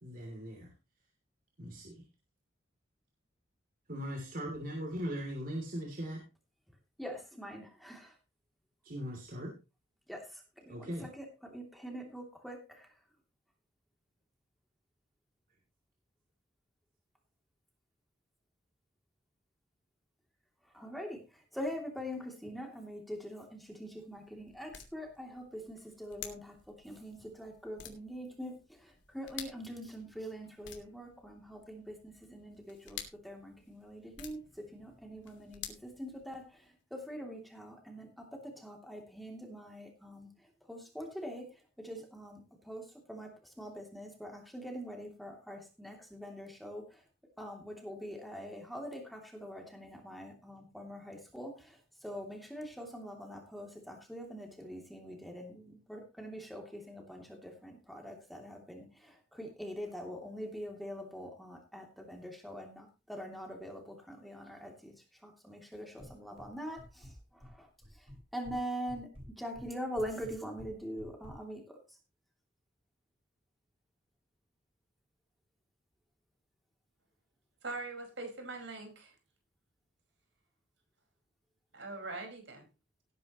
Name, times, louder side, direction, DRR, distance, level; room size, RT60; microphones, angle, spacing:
voice 1, 0.0-0.7 1.6-2.0 3.9-6.2 8.8-9.6 10.7-11.1, equal, 50° right, 1 dB, 3.0 m, -39 dB
voice 2, 7.0-8.1 10.1-12.9 20.7-40.3 40.7-47.0 47.4-64.9 65.2-67.7 68.0-68.1 68.3-69.1 69.4-71.8, equal, ahead, 1 dB, 2.8 m, -44 dB
sound 1, 23.5-36.7, left 9 dB, 70° left, 2.8 m, -52 dB
sound 2, 66.0-66.5 66.8-67.5 67.8-68.6 68.9-71.4, equal, 30° right, 4.9 m, -50 dB
voice 3, 77.6-79.1 81.7-82.7, right 3 dB, 75° right, 3 dB, 5.2 m, -42 dB
18.5 x 9.6 x 3.1 m, 0.28 s
head